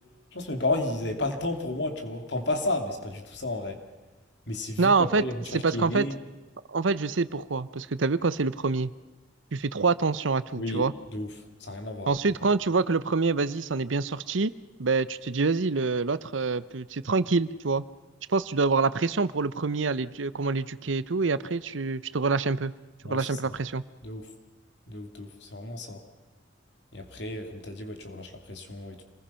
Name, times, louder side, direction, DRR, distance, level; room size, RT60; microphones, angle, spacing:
voice 1, 0.3-3.8 4.5-6.2 10.6-11.3 11.6-12.1 23.0-23.5 24.0-24.3 24.9-26.0 26.9-29.0, left 2 dB, 60° left, 6 dB, 2.9 m, -32 dB
voice 2, 4.8-5.2 5.5-6.0 6.7-8.9 9.5-10.9 12.1-14.5 14.8-17.8 18.3-22.7 23.0-23.8, right 4 dB, 85° right, 16 dB, 0.8 m, -26 dB
27.0 x 20.5 x 5.7 m, 1.2 s
head